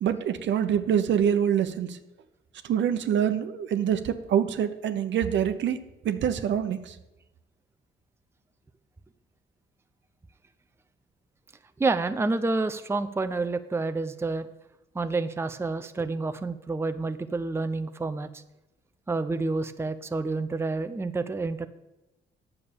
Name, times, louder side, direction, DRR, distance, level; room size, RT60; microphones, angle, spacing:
voice 1, 0.0-2.0 2.6-5.8 6.0-6.9, right 9 dB, 65° right, 10 dB, 0.9 m, -25 dB
voice 2, 11.8-14.5 14.9-18.4 19.1-21.7, right 3 dB, 10° right, 10 dB, 0.5 m, -29 dB
9.0 x 7.0 x 6.9 m, 0.98 s
cardioid pair, 90°, 20 cm